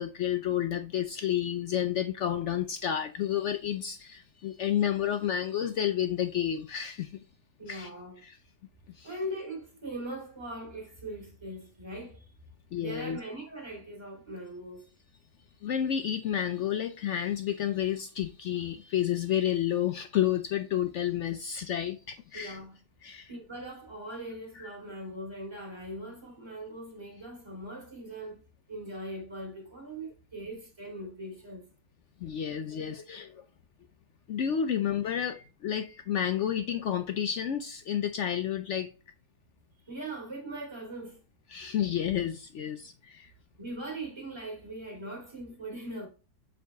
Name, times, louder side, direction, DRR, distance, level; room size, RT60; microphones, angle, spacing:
voice 1, 0.0-7.2 7.6-7.9 8.2-8.4 8.9-9.1 12.7-13.2 15.6-22.6 23.0-23.3 24.6-24.7 32.2-33.4 34.3-38.9 41.5-43.3, left 10 dB, 70° left, 0.7 m, -30 dB
voice 2, 7.6-8.2 9.0-12.3 12.8-14.9 22.3-22.8 23.3-28.4 28.7-31.7 35.0-35.4 35.7-36.0 39.9-41.2 43.6-46.1, right 1 dB, 15° right, 2.6 m, -40 dB
7.1 x 3.8 x 3.4 m
omnidirectional pair, 1.6 m